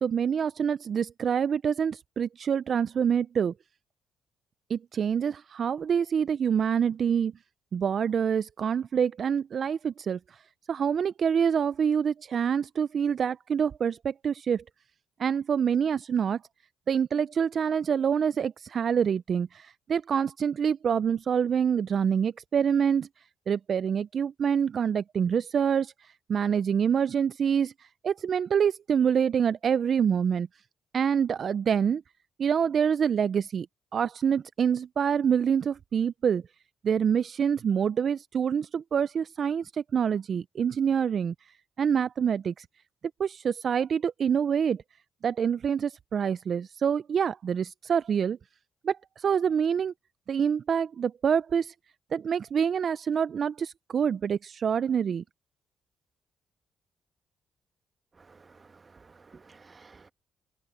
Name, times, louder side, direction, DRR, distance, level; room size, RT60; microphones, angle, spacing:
voice 1, 0.0-3.5 4.7-7.3 7.7-10.4 10.7-14.6 15.2-16.4 16.9-30.5 30.9-32.0 32.4-33.7 33.9-36.4 36.8-42.7 43.2-44.8 45.2-48.4 48.8-49.9 50.3-51.7 52.1-55.2, right 7 dB, 50° right, 0.3 m, -26 dB
voice 2, 58.2-60.1, right 4 dB, 30° right, 1.2 m, -54 dB
cardioid pair, 90°, 0 cm